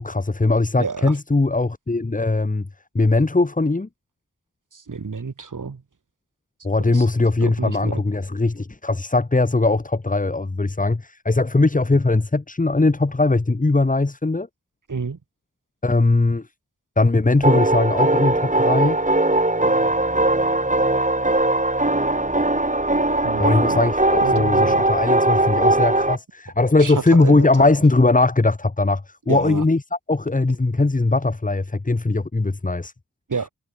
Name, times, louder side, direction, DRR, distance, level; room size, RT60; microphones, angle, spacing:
voice 1, 0.0-2.7 2.9-3.9 6.6-14.5 15.8-16.4 17.0-19.0 23.4-29.8 30.1-32.9, left 2 dB, 25° left, 1.3 m, -20 dB
voice 2, 0.8-1.2 4.7-5.8 6.9-7.1 7.4-8.0 14.9-15.2 23.2-23.8 24.2-24.8 26.8-27.7 29.3-29.6 33.3-33.5, right 5 dB, 80° right, 6.1 m, -29 dB
sound 1, 17.4-26.2, right 2 dB, 25° right, 3.8 m, -19 dB
cardioid pair, 50°, 31 cm